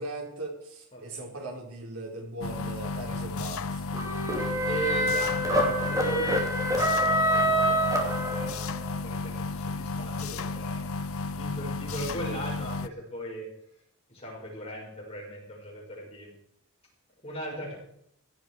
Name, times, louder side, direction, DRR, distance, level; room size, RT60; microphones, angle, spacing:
voice 1, 0.0-3.8, right 2 dB, 90° right, 1 dB, 4.2 m, -39 dB
voice 2, 0.9-1.2 4.7-6.4 7.3-8.6 9.0-13.5 14.1-16.3 17.2-17.7, right 1 dB, 30° left, -2 dB, 6.2 m, -38 dB
sound 1, 2.4-12.9, left 3 dB, 75° left, 0.7 m, -33 dB
sound 2, 3.9-8.8, equal, 15° right, 2.7 m, -26 dB
16.5 x 13.0 x 4.9 m, 0.71 s
head